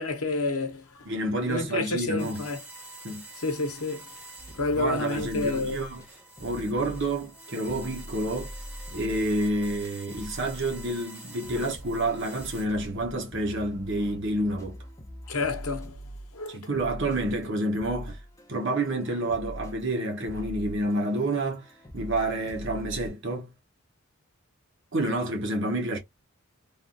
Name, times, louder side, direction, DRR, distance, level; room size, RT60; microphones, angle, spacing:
voice 1, 0.0-1.1 1.5-2.6 3.4-4.1 4.5-5.8 11.5-11.7 15.3-16.0 16.3-16.6, left 3 dB, 90° left, 0.8 m, -29 dB
voice 2, 1.1-2.4 3.0-3.2 4.7-6.0 6.4-8.5 8.9-14.8 16.5-18.2 18.5-21.6 21.9-23.5 24.9-26.0, right 1 dB, 60° right, 0.9 m, -29 dB
sound 1, 2.2-12.7, right 2 dB, 5° right, 1.3 m, -47 dB
sound 2, 4.4-6.1 6.4-23.1, equal, 15° left, 0.6 m, -43 dB
3.3 x 2.3 x 2.5 m
head